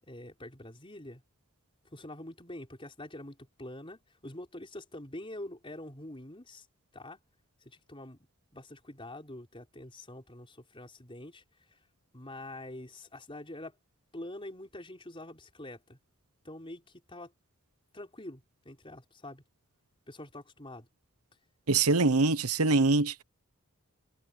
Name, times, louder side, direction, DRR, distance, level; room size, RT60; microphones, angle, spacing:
voice 1, 0.0-1.2 1.9-6.7 6.9-7.2 7.6-8.2 8.5-11.8 12.1-13.8 14.1-16.0 16.4-17.3 17.9-19.4 20.1-20.9, left 1 dB, 25° left, 5.1 m, -45 dB
voice 2, 21.7-23.2, right 3 dB, 85° right, 1.1 m, -24 dB
head